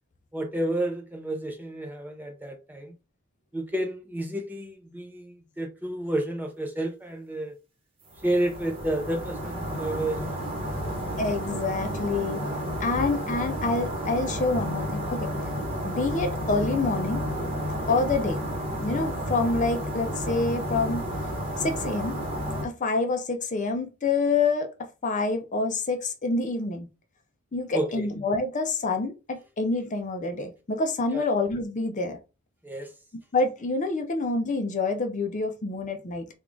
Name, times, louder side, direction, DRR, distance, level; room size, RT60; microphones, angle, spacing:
voice 1, 0.3-2.9 3.5-7.5 8.2-10.9 27.7-28.1 31.1-31.2 32.6-32.9, right 1 dB, 10° right, 0.6 m, -31 dB
sound 1, 8.1-22.6, equal, 25° right, 1.0 m, -31 dB
voice 2, 11.2-12.4 12.8-15.3 15.8-17.2 17.9-18.4 18.8-21.1 21.6-22.2 22.6-24.7 25.0-26.9 27.5-32.2 33.3-36.2, left 3 dB, 35° left, 0.5 m, -27 dB
3.5 x 2.3 x 3.7 m
head